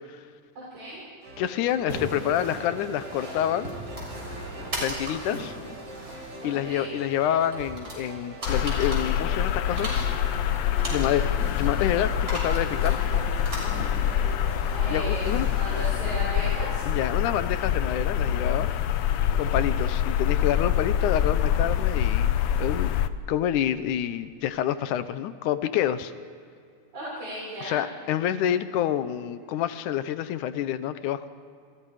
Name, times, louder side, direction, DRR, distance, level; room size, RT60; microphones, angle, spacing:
voice 1, 0.6-1.0 6.4-6.9 14.7-16.8 26.9-27.8, right 1 dB, 75° right, -7 dB, 8.3 m, -36 dB
sound 1, 1.2-16.5, right 2 dB, 50° right, 4.6 m, -44 dB
voice 2, 1.4-3.7 4.7-5.5 6.4-10.2 10.9-13.0 14.9-15.5 16.9-18.7 19.4-23.0 23.3-26.1 27.6-31.3, left 10 dB, 85° left, 12 dB, 2.5 m, -28 dB
sound 2, 1.9-17.7, right 1 dB, 30° right, 7.4 m, -38 dB
sound 3, 8.5-23.1, left 9 dB, 70° left, 1.4 m, -25 dB
30.0 x 29.0 x 5.0 m, 2.4 s
omnidirectional pair, 3.4 m